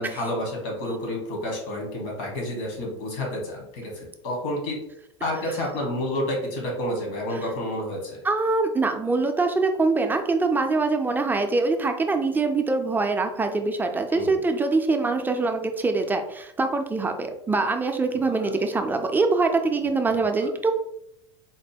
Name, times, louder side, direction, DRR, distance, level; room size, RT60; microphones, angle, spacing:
voice 1, 0.0-4.8 5.2-8.2 14.1-14.4 18.3-18.5 20.2-20.5, left 1 dB, 60° left, 0 dB, 1.5 m, -30 dB
voice 2, 8.2-20.7, right 3 dB, 10° right, 5 dB, 0.5 m, -24 dB
4.3 x 2.1 x 3.5 m, 0.81 s
hypercardioid pair, 90°, 15 cm